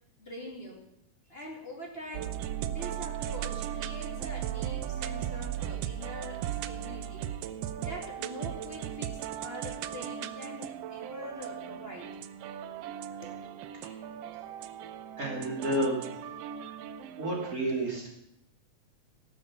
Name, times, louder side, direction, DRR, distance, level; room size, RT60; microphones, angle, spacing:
voice 1, 0.2-0.8 1.3-2.4 2.7-7.3 7.8-12.1 13.2-13.4, equal, 20° left, 0 dB, 2.3 m, -44 dB
sound 1, 2.1-17.6, right 10 dB, 85° right, 1.4 m, -37 dB
voice 2, 15.2-16.3 17.2-18.1, right 1 dB, 30° right, -2 dB, 2.7 m, -31 dB
17.0 x 7.1 x 7.1 m, 0.79 s
omnidirectional pair, 3.5 m